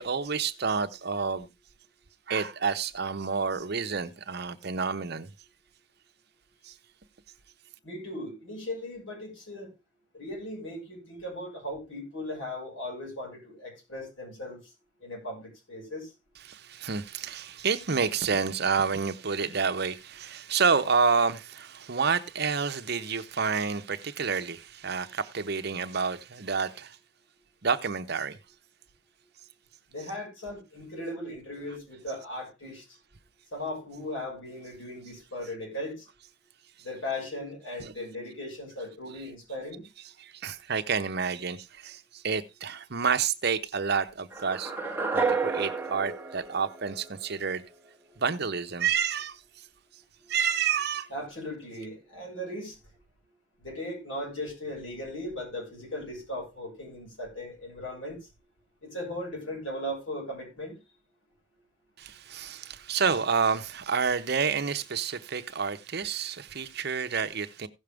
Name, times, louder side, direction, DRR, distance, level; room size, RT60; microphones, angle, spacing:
voice 1, 0.0-1.5 2.3-5.3 6.7-6.8 16.4-27.0 27.6-28.4 37.8-37.9 40.2-44.7 45.1-47.6 48.2-49.4 50.3-51.1 62.0-67.7, right 5 dB, 55° right, 0.9 m, -29 dB
voice 2, 7.8-9.7 10.1-14.6 15.0-16.1 29.9-32.8 33.5-36.0 36.8-39.8 50.2-50.3 51.1-52.7 53.6-58.2 58.9-60.7, left 1 dB, 80° left, 6.5 m, -37 dB
sound 1, 44.3-47.4, right 4 dB, 10° right, 1.0 m, -31 dB
16.0 x 6.5 x 3.5 m
head